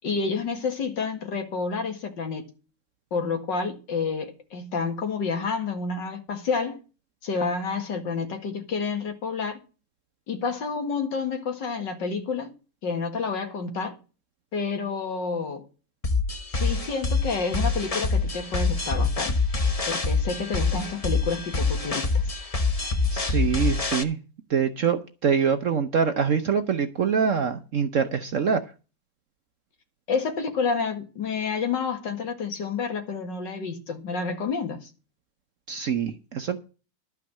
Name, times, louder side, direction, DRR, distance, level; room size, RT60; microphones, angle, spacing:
voice 1, 0.0-2.5 3.1-6.8 7.2-9.6 10.3-12.5 12.8-14.0 14.5-15.7 16.5-19.4 19.9-22.4 30.1-34.9, left 5 dB, 70° left, 2.5 m, -29 dB
sound 1, 16.0-24.0, left 3 dB, 30° left, 0.7 m, -25 dB
voice 2, 23.1-24.2 24.5-28.6 35.7-36.6, right 6 dB, 55° right, 0.9 m, -24 dB
12.0 x 5.7 x 7.5 m
omnidirectional pair, 2.0 m